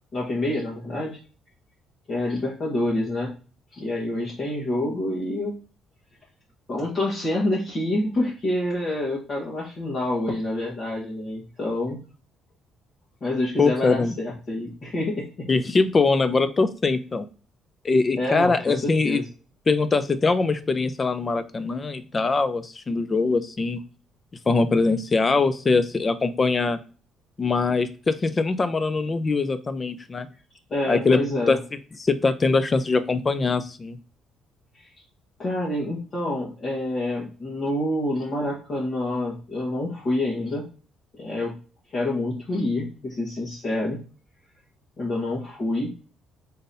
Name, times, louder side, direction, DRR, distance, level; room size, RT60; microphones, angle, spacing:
voice 1, 0.1-1.2 2.1-3.3 3.7-5.5 6.7-12.0 13.2-15.5 18.1-19.3 30.7-31.6 34.7-34.9 35.4-40.6 41.1-41.6 41.9-44.0 45.0-45.9, left 1 dB, 45° left, -5 dB, 1.3 m, -27 dB
voice 2, 13.6-14.1 15.5-17.3 17.8-19.2 19.7-23.8 24.5-26.8 27.4-30.3 30.9-31.2 31.5-31.6 32.0-34.0, left 3 dB, 30° left, 12 dB, 0.5 m, -22 dB
3.9 x 3.7 x 2.7 m, 0.35 s
cardioid pair, 100°, 0 cm